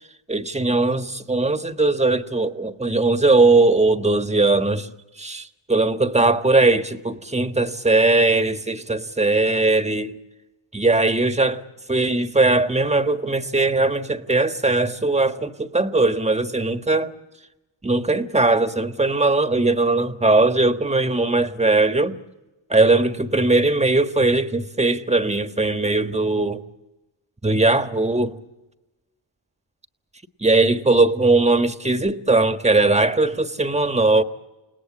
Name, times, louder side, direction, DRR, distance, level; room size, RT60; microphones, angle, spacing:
voice 1, 0.3-4.9 5.2-5.4 5.7-10.2 10.7-11.6 11.9-17.1 17.8-22.2 22.7-26.6 27.4-28.4 30.4-34.2, right 2 dB, 15° right, 1.5 m, -19 dB
28.5 x 18.5 x 8.5 m
cardioid pair, 55°, 44 cm